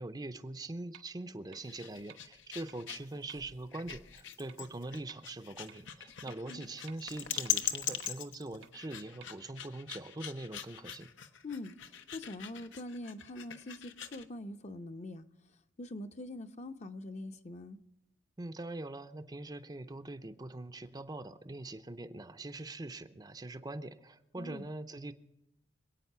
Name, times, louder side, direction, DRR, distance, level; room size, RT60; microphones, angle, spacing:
voice 1, 0.0-11.1 18.4-25.1, right 2 dB, 20° right, 0.6 m, -43 dB
sound 1, 0.9-1.0 1.5-1.6 2.1-2.2 2.7-2.8 3.3-3.4 3.9-4.0 4.5-4.6 5.1-5.2 5.7-5.8 6.3-6.4 6.9-7.0 7.4-7.5 8.0-8.1 8.6-8.7 9.2-9.3, right 8 dB, 75° right, 1.4 m, -53 dB
sound 2, 1.6-14.3, left 9 dB, 80° left, 1.0 m, -41 dB
voice 2, 11.4-15.3 15.8-17.8 24.4-24.6, left 1 dB, 40° left, 0.8 m, -44 dB
26.0 x 8.9 x 5.6 m
head